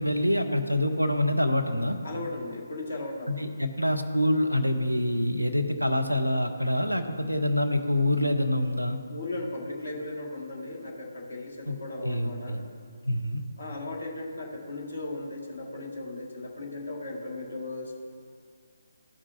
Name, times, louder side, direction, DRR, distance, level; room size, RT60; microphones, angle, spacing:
voice 1, 0.0-2.0 3.3-9.0 11.7-11.8 12.0-12.6 13.1-13.4, left 1 dB, 90° left, 5 dB, 0.8 m, -26 dB
voice 2, 2.0-3.5 9.1-12.6 13.6-18.0, left 2 dB, 55° left, -1 dB, 1.8 m, -37 dB
14.5 x 6.0 x 2.7 m, 2.2 s
figure-of-eight pair, 145°, 0 cm